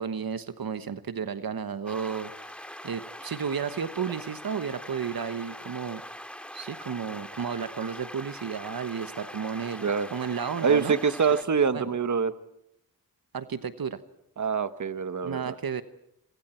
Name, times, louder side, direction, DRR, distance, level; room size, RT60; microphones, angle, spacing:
voice 1, 0.0-6.0 6.5-11.0 11.7-11.9 13.3-14.0 15.2-15.8, right 6 dB, 70° right, 11 dB, 1.2 m, -33 dB
sound 1, 1.9-11.4, equal, 5° left, 2.3 m, -43 dB
voice 2, 10.6-12.3 14.4-15.5, right 6 dB, 50° right, 12 dB, 1.3 m, -25 dB
27.0 x 26.0 x 4.5 m, 0.80 s
cardioid pair, 55°, 37 cm